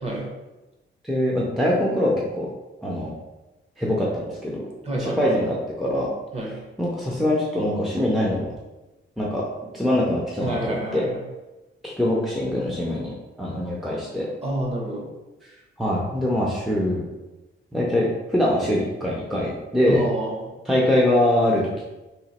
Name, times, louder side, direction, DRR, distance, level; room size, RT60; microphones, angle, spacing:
voice 1, 0.0-0.3 4.8-5.4 6.3-6.5 10.4-11.2 14.4-15.1 19.9-20.6, right 1 dB, 30° right, -1 dB, 0.7 m, -28 dB
voice 2, 1.0-2.5 2.8-3.1 3.8-4.7 5.0-6.1 6.8-8.5 9.2-9.4 9.7-11.0 11.8-14.3 15.8-17.1 17.7-20.0 20.7-21.8, left 1 dB, ahead, -4 dB, 0.4 m, -23 dB
2.9 x 2.8 x 4.1 m, 1.1 s
wide cardioid pair, 180°, 21 cm